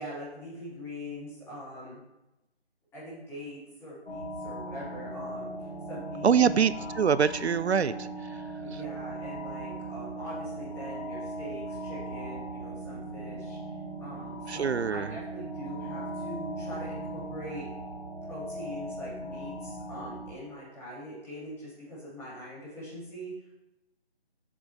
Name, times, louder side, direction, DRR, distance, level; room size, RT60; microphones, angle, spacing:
voice 1, 0.0-2.0 2.9-7.0 8.6-13.7 14.0-17.7 18.2-23.3, equal, 5° left, -11 dB, 3.1 m, -42 dB
sound 1, 4.1-20.3, right 1 dB, 85° left, 3.2 m, -38 dB
voice 2, 6.2-8.1 14.5-15.1, right 7 dB, 85° right, 16 dB, 0.5 m, -24 dB
7.4 x 7.0 x 4.9 m, 0.97 s
figure-of-eight pair, 155°, 32 cm